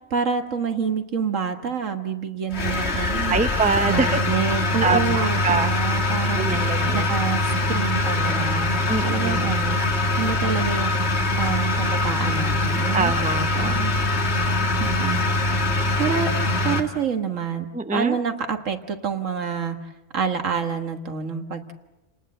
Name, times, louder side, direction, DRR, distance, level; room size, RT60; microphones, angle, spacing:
voice 1, 0.1-3.4 3.9-6.5 6.9-8.7 9.0-9.8 10.2-10.9 11.4-13.1 13.5-13.9 14.8-15.4 15.7-16.3 16.6-19.8 20.1-21.7, right 6 dB, 80° right, 6 dB, 1.9 m, -27 dB
sound 1, 2.5-16.8, left 2 dB, 55° left, 2.1 m, -23 dB
voice 2, 3.3-4.2 4.8-5.7 6.4-7.1 8.9-9.6 12.9-13.8 17.7-18.2, right 4 dB, 5° right, 9 dB, 0.7 m, -24 dB
29.5 x 19.0 x 7.8 m, 1.0 s
omnidirectional pair, 1.3 m